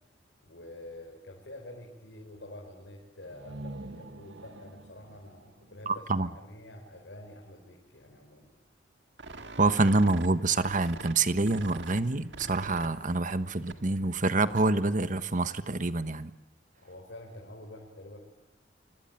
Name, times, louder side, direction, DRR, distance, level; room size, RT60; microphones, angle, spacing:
voice 1, 0.4-8.5 16.8-18.2, left 1 dB, 75° left, 0 dB, 5.2 m, -47 dB
sound 1, 3.2-7.0, right 2 dB, 85° right, 1.6 m, -46 dB
voice 2, 5.9-6.3 9.6-16.3, right 3 dB, 45° right, 12 dB, 1.3 m, -26 dB
sound 2, 9.2-14.9, right 3 dB, 70° right, 2.0 m, -46 dB
25.5 x 25.5 x 9.2 m, 0.93 s
head